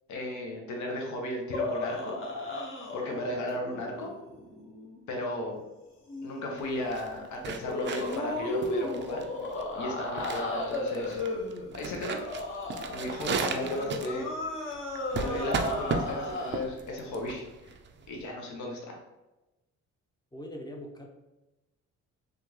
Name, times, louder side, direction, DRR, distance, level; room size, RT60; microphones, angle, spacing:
voice 1, 0.1-2.2 2.9-4.1 5.1-5.6 6.2-9.2 9.7-11.2 11.7-12.2 12.9-14.3 15.1-17.7 18.1-19.0, left 1 dB, 75° left, 1 dB, 0.8 m, -35 dB
sound 1, 1.5-5.0 6.1-6.5 7.6-16.6, left 2 dB, 45° left, 0.8 m, -35 dB
sound 2, 6.6-18.2, right 4 dB, 40° right, 0.4 m, -36 dB
voice 2, 20.3-21.1, equal, 15° left, 1 dB, 0.6 m, -41 dB
3.5 x 2.4 x 2.9 m, 1.0 s
cardioid pair, 90°, 30 cm